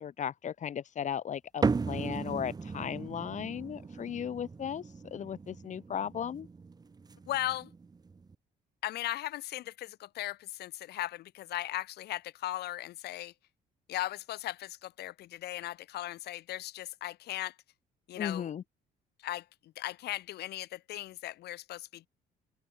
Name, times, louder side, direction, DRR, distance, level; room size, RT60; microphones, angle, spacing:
voice 1, 0.0-6.5 18.2-18.6, left 8 dB, 45° left, 2.3 m, -36 dB
sound 1, 1.6-8.3, right 4 dB, 25° right, 1.6 m, -37 dB
voice 2, 7.3-7.7 8.8-13.3 13.9-17.5 18.1-18.5 19.2-19.5 19.8-22.1, left 15 dB, 75° left, 6.8 m, -37 dB
open air
cardioid pair, 110°, 17 cm